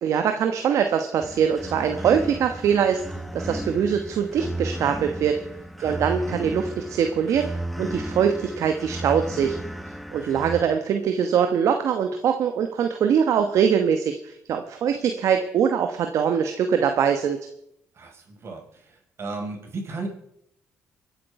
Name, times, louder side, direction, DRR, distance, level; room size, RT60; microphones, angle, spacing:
voice 1, 0.0-3.0 3.3-5.4 5.8-7.5 7.8-9.6 10.1-17.4, right 7 dB, 70° right, 6 dB, 1.1 m, -22 dB
sound 1, 1.2-10.6, right 1 dB, ahead, 1.4 m, -34 dB
voice 2, 5.8-6.1 17.9-20.1, right 3 dB, 50° right, 1 dB, 5.0 m, -35 dB
24.5 x 8.6 x 4.8 m, 0.78 s
supercardioid pair, 60°, 6 cm